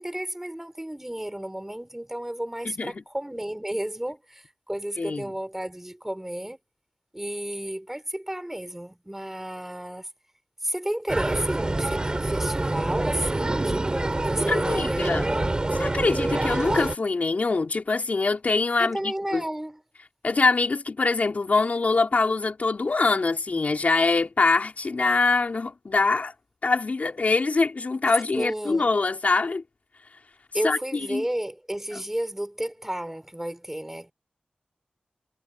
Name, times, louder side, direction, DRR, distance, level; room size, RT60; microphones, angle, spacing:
voice 1, 0.0-6.6 7.1-10.1 10.6-15.6 18.8-19.8 28.4-28.9 30.5-34.1, right 1 dB, 10° right, 4.0 m, -32 dB
voice 2, 2.7-3.0 5.0-5.2 14.5-15.2 15.8-19.4 20.2-26.3 26.6-29.6 30.6-31.2, left 3 dB, 60° left, 3.8 m, -24 dB
sound 1, 11.1-16.9, right 2 dB, 30° right, 3.1 m, -26 dB
wide cardioid pair, 90°, 3 cm